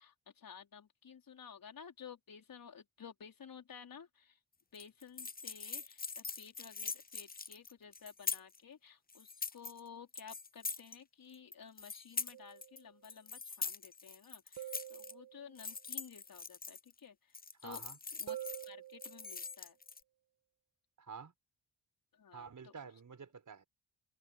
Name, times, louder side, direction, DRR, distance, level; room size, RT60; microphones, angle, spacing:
voice 1, 0.0-4.4 4.7-17.2 17.6-17.8 18.1-18.4 18.7-19.7 22.2-22.7, left 7 dB, 60° left, 4.5 m, -54 dB
sound 1, 4.7-8.6 9.1-9.8 10.1-11.0 11.3-12.8 13.0-15.1 15.6-17.0 17.3-18.7 19.0-20.0, left 4 dB, 25° left, 0.8 m, -43 dB
sound 2, 12.3-12.9 14.6-15.7 18.3-19.6, right 13 dB, 75° right, 2.0 m, -47 dB
voice 2, 17.6-18.0 21.0-21.3 22.3-23.6, right 6 dB, 50° right, 5.8 m, -49 dB
supercardioid pair, 50°, 39 cm